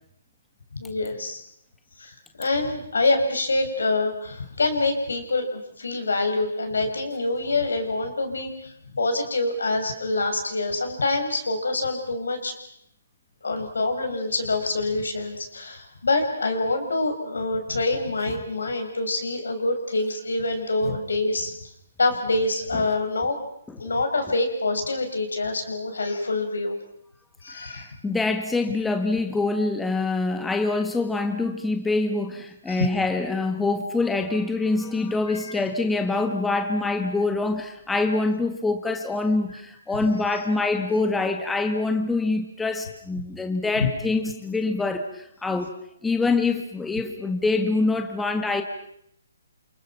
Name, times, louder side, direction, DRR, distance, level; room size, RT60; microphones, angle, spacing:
voice 1, 0.7-1.4 2.0-12.6 13.4-21.5 22.0-23.4 23.8-26.7 27.4-27.9 32.7-32.9 35.3-35.6 40.3-40.4 43.8-43.9, left 2 dB, 75° left, 6 dB, 6.8 m, -26 dB
voice 2, 27.5-45.7 46.0-48.6, left 3 dB, 5° left, 6 dB, 1.9 m, -25 dB
29.5 x 28.0 x 6.0 m, 0.73 s
figure-of-eight pair, 140°, 0 cm